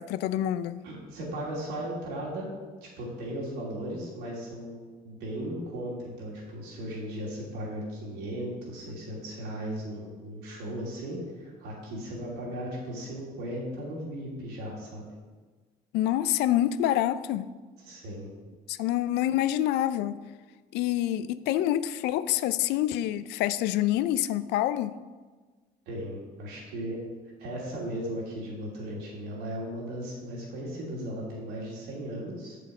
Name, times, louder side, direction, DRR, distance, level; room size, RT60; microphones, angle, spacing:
voice 1, 0.0-0.8 15.9-17.5 18.7-20.2 20.7-24.9, left 12 dB, 85° left, 15 dB, 0.4 m, -27 dB
voice 2, 0.8-2.5 2.8-15.1 17.8-18.3 25.9-27.0 27.4-32.6, right 1 dB, 90° right, -4 dB, 2.8 m, -36 dB
7.3 x 6.7 x 4.8 m, 1.4 s
cardioid pair, 110°, 17 cm